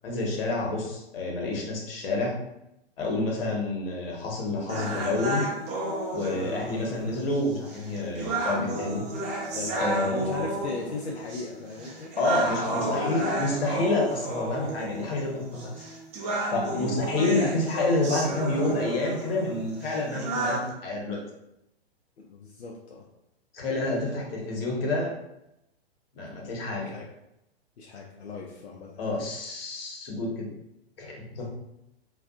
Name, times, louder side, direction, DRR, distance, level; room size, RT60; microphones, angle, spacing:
voice 1, 0.0-2.4 3.0-5.4 6.1-9.1 9.8-10.5 12.2-15.7 16.5-21.2 23.5-25.1 26.1-27.0 29.0-30.5 31.0-31.5, left 2 dB, 65° left, -2 dB, 1.0 m, -28 dB
sound 1, 4.7-20.7, right 2 dB, 20° right, 0.5 m, -32 dB
voice 2, 9.5-12.1 12.9-13.5 16.7-16.9 22.2-23.1 23.9-24.3 26.8-27.1 27.8-29.2, left 4 dB, 90° left, -1 dB, 0.5 m, -37 dB
2.5 x 2.3 x 2.4 m, 0.86 s
hypercardioid pair, 115°, 32 cm